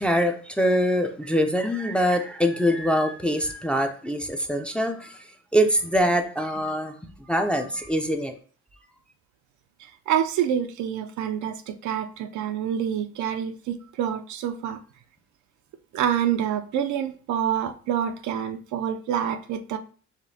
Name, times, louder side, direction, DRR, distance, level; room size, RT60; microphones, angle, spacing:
voice 1, 0.0-5.2 5.5-8.3, equal, 5° left, 5 dB, 0.4 m, -24 dB
voice 2, 10.1-14.8 15.9-19.8, right 9 dB, 75° right, 8 dB, 0.5 m, -27 dB
5.0 x 2.6 x 2.7 m, 0.41 s
cardioid pair, 90°, 30 cm